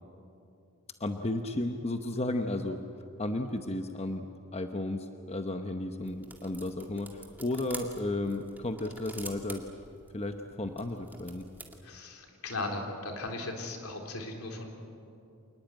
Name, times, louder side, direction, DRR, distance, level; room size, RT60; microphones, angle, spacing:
voice 1, 1.0-2.8 3.2-9.7 10.1-11.4, left 2 dB, 30° left, 6 dB, 0.9 m, -33 dB
sound 1, 6.0-11.8, right 2 dB, 10° right, 2.1 m, -47 dB
voice 2, 11.8-14.7, left 2 dB, 75° left, 3 dB, 3.7 m, -37 dB
27.5 x 20.0 x 9.1 m, 2.8 s
head